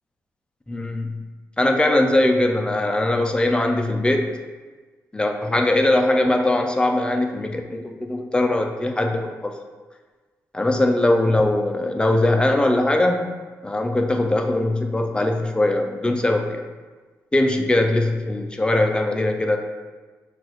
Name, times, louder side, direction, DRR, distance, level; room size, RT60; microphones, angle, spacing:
voice 1, 0.7-1.2 1.6-4.3 5.1-9.5 10.5-13.3 13.6-16.6 17.3-19.6, left 1 dB, 15° left, 3 dB, 0.5 m, -21 dB
5.9 x 2.4 x 3.1 m, 1.3 s
cardioid pair, 75°, 6 cm